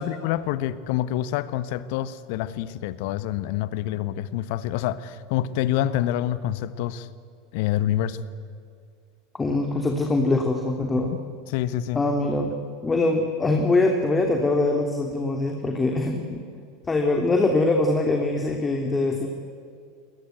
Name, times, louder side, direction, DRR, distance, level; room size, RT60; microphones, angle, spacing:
voice 1, 0.0-7.1 7.5-8.2 11.5-12.0, left 12 dB, 55° left, 16 dB, 1.3 m, -27 dB
voice 2, 9.3-11.1 11.9-16.4 16.9-19.3, left 2 dB, 15° left, 3 dB, 2.9 m, -23 dB
30.0 x 23.0 x 8.1 m, 2.4 s
figure-of-eight pair, 80°, 0 cm